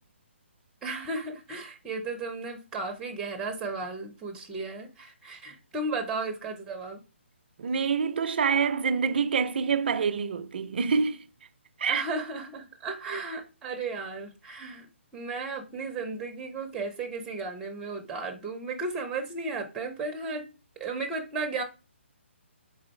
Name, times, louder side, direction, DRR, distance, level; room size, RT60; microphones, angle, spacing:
voice 1, 0.8-7.0 11.9-14.9 15.1-20.5 20.8-21.6, right 3 dB, 10° right, 0.7 m, -34 dB
voice 2, 7.6-11.2 11.8-12.0, right 5 dB, 50° right, 0.5 m, -26 dB
3.9 x 3.9 x 3.1 m
figure-of-eight pair, 145°, 7 cm